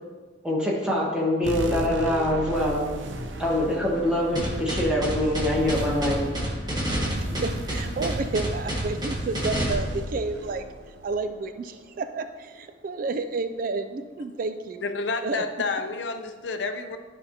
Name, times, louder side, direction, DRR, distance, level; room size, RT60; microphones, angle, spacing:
voice 1, 0.4-2.9 3.4-6.2, left 1 dB, 5° right, -4 dB, 1.4 m, -24 dB
sound 1, 1.4-12.3, right 1 dB, 80° right, 0.7 m, -37 dB
sound 2, 4.4-9.7, equal, 20° right, 1.3 m, -28 dB
voice 2, 7.0-14.8 15.2-15.4, right 3 dB, 45° right, 9 dB, 0.3 m, -31 dB
voice 3, 14.8-17.0, left 4 dB, 70° left, 7 dB, 0.6 m, -29 dB
11.0 x 5.4 x 2.8 m, 1.4 s
head